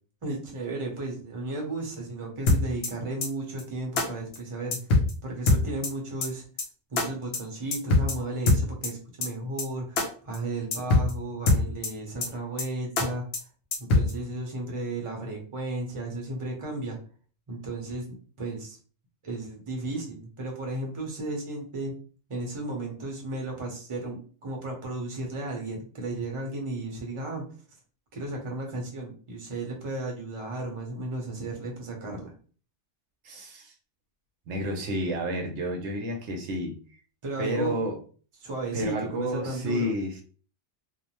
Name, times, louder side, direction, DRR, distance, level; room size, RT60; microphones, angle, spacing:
voice 1, 0.2-4.8 5.2-6.4 6.9-13.2 13.8-17.0 17.5-18.0 18.4-18.8 19.2-21.9 22.3-27.4 28.1-32.3 37.2-37.7 38.4-39.9, right 2 dB, 30° right, 0 dB, 0.7 m, -34 dB
sound 1, 2.5-2.9 3.2-3.3 3.6-3.7 4.0-4.1 4.3-4.4 4.7-5.1 5.5-5.9 6.2-6.3 6.6-6.7 7.0-7.1 7.3-7.4 7.7-8.1 8.5-8.9 9.2-9.3 9.6-9.7 10.0-10.1 10.3-10.4 10.7-11.1 11.5-11.9 12.2-12.3 12.6-12.7 13.0-13.1 13.3-13.4 13.7-14.1, left 2 dB, 65° left, 0.9 m, -22 dB
voice 2, 33.2-33.7 34.5-36.7 37.4-38.0 38.7-40.2, equal, 85° right, 3 dB, 0.9 m, -30 dB
2.6 x 2.1 x 2.9 m, 0.40 s
omnidirectional pair, 1.1 m